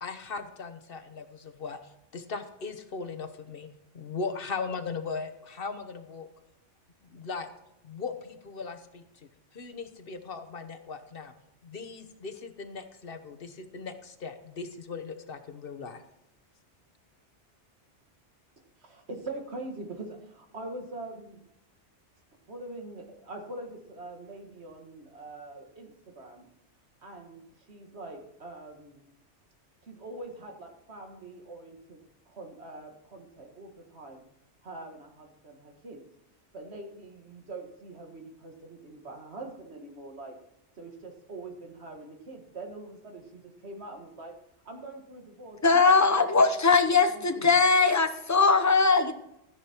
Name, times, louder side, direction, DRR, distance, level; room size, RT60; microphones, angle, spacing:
voice 1, 0.0-3.7 3.9-6.3 7.0-7.5 7.8-11.3 11.6-16.0, left 4 dB, 50° left, 8 dB, 1.3 m, -38 dB
voice 2, 18.6-21.4 22.5-26.5 27.0-29.0 29.8-32.0 32.3-34.2 34.6-36.0 36.5-40.4 40.8-44.3 44.7-45.9 46.2-46.4 46.9-47.5, right 2 dB, 65° right, 3 dB, 2.1 m, -43 dB
voice 3, 45.6-49.2, left 4 dB, 15° left, 8 dB, 0.7 m, -21 dB
13.5 x 10.0 x 4.5 m, 0.81 s
omnidirectional pair, 1.2 m